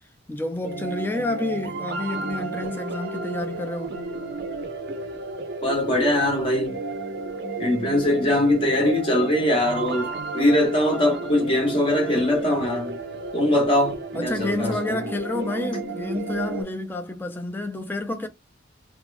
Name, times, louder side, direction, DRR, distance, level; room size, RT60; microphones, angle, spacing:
voice 1, 0.3-4.0 14.1-18.3, left 2 dB, 10° left, 0.4 m, -29 dB
sound 1, 0.6-16.6, right 3 dB, 60° right, 0.5 m, -32 dB
voice 2, 5.6-6.8 7.6-13.0 13.3-15.0, left 1 dB, 30° left, 0.8 m, -22 dB
2.6 x 2.0 x 2.4 m
head